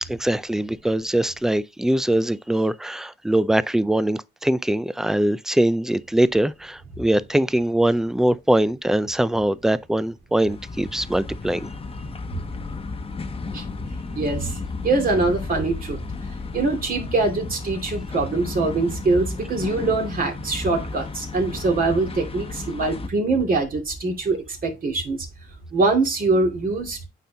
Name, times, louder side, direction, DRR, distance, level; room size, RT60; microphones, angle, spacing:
voice 1, 0.1-11.7, right 1 dB, ahead, 0.4 m, -22 dB
sound 1, 10.5-23.1, left 4 dB, 30° left, 0.9 m, -34 dB
voice 2, 14.1-14.6 14.8-16.0 16.3-25.3 25.7-27.0, right 3 dB, 45° right, 2.5 m, -23 dB
9.1 x 4.2 x 2.8 m
cardioid pair, 90°, 20 cm